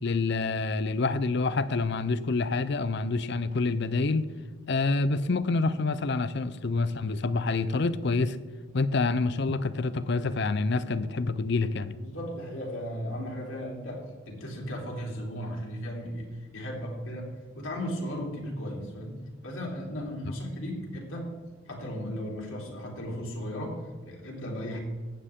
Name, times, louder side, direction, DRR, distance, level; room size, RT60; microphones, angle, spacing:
voice 1, 0.0-4.3 4.7-8.4 8.7-12.0, left 3 dB, 55° left, 14 dB, 0.6 m, -27 dB
voice 2, 12.0-21.4 21.7-24.8, equal, 75° left, -2 dB, 3.4 m, -36 dB
15.0 x 10.0 x 3.7 m, 1.4 s
head